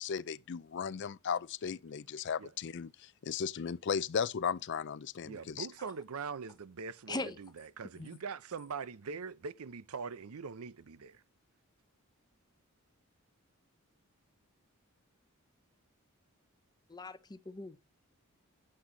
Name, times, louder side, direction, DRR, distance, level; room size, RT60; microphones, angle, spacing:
voice 1, 0.0-5.7, left 6 dB, 55° left, 0.4 m, -36 dB
voice 2, 5.2-11.2, right 5 dB, 85° right, 0.6 m, -42 dB
voice 3, 16.9-17.8, left 2 dB, 20° left, 0.7 m, -40 dB
9.8 x 7.6 x 3.8 m
head